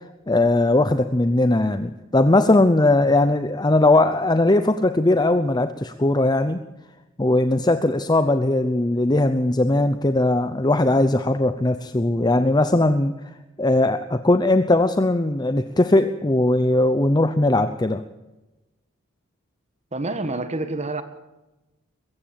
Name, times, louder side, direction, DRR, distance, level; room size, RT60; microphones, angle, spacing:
voice 1, 0.3-6.6 7.2-13.1 13.6-18.0, left 2 dB, 20° left, 10 dB, 0.7 m, -19 dB
voice 2, 19.9-21.0, right 2 dB, 30° right, 10 dB, 1.6 m, -27 dB
22.0 x 15.0 x 8.9 m, 1.0 s
head